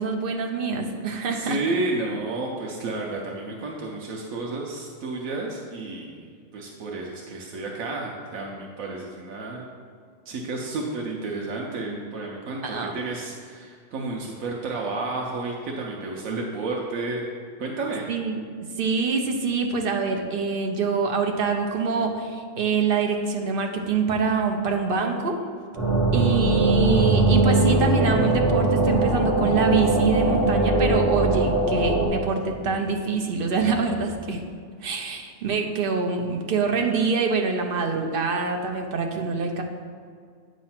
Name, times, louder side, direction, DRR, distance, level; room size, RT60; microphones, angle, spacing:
voice 1, 0.0-1.6 4.5-4.6 12.6-12.9 18.1-18.4 18.8-25.4 26.1-34.4 34.8-39.6, right 5 dB, 50° right, 3 dB, 0.7 m, -25 dB
voice 2, 1.3-9.7 10.3-17.2 17.6-18.1, right 3 dB, 85° right, -1 dB, 1.1 m, -31 dB
sound 1, 25.8-32.1, right 2 dB, 25° right, 1.5 m, -21 dB
8.6 x 3.1 x 5.7 m, 2.1 s
omnidirectional pair, 1.4 m